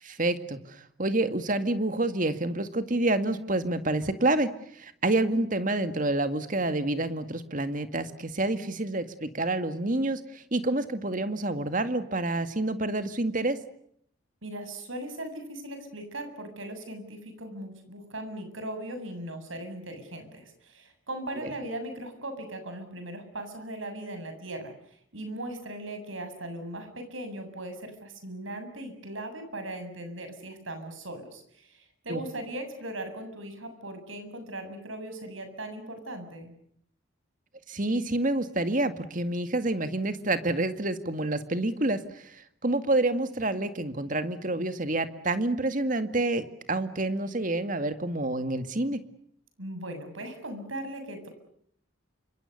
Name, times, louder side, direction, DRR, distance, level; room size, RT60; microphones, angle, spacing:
voice 1, 0.0-13.6 21.4-21.5 32.1-32.2 37.7-49.0, right 2 dB, 40° right, 10 dB, 2.1 m, -28 dB
voice 2, 14.4-36.6 49.6-51.3, right 1 dB, 80° right, 7 dB, 7.5 m, -39 dB
29.5 x 26.5 x 6.7 m, 0.69 s
head